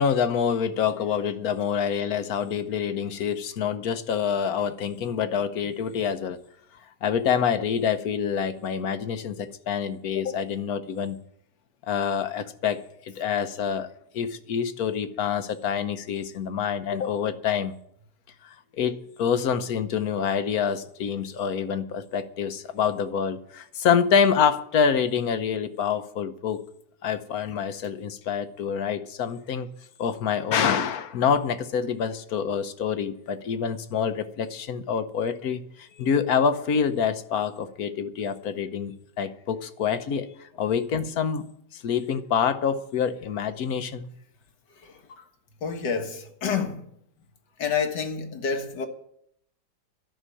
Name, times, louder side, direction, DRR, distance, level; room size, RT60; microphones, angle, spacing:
voice 1, 0.0-6.4 7.0-11.2 11.9-13.9 14.1-17.7 18.4-26.6 27.0-29.7 30.0-41.4 41.7-44.1, left 7 dB, 65° left, 1.3 m, -26 dB
voice 2, 44.8-45.3 45.6-46.9 47.6-48.9, left 6 dB, 90° left, 2.1 m, -29 dB
12.5 x 6.2 x 9.8 m
omnidirectional pair, 1.8 m